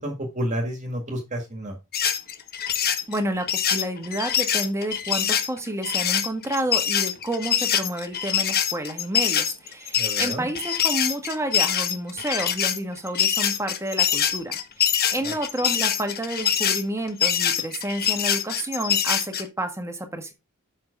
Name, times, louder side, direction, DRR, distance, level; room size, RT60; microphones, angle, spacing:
voice 1, 0.0-1.7 10.0-10.5 15.2-15.3, equal, 35° right, 1.9 m, -30 dB
sound 1, 1.9-19.4, left 9 dB, 45° left, 1.1 m, -24 dB
voice 2, 3.1-20.3, right 1 dB, 15° right, 1.6 m, -30 dB
7.7 x 5.7 x 5.2 m
head